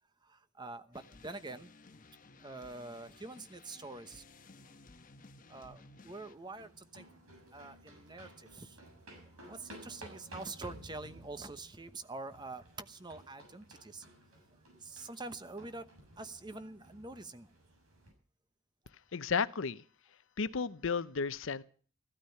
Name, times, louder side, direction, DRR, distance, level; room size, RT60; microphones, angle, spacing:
voice 1, 0.2-1.7 2.4-4.2 5.5-7.0 7.5-8.8 9.4-14.0 14.7-15.9 16.2-17.5, right 3 dB, 20° right, 11 dB, 0.9 m, -46 dB
sound 1, 0.9-6.3, left 3 dB, 40° left, 1.0 m, -57 dB
sound 2, 6.3-18.1, right 1 dB, 75° right, 7.0 m, -55 dB
voice 2, 19.1-19.8 20.4-21.6, left 5 dB, 60° left, 15 dB, 0.7 m, -33 dB
15.0 x 13.0 x 5.6 m, 0.43 s
head